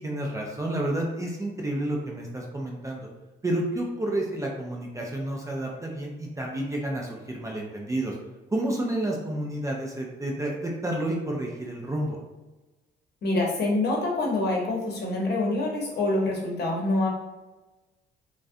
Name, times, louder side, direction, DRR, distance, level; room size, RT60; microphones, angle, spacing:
voice 1, 0.0-3.1 3.4-8.1 8.5-12.2, right 1 dB, 15° right, -1 dB, 0.4 m, -30 dB
voice 2, 13.2-17.1, left 2 dB, 55° left, -2 dB, 0.8 m, -26 dB
2.3 x 2.1 x 2.6 m, 1.1 s
cardioid pair, 90°, 20 cm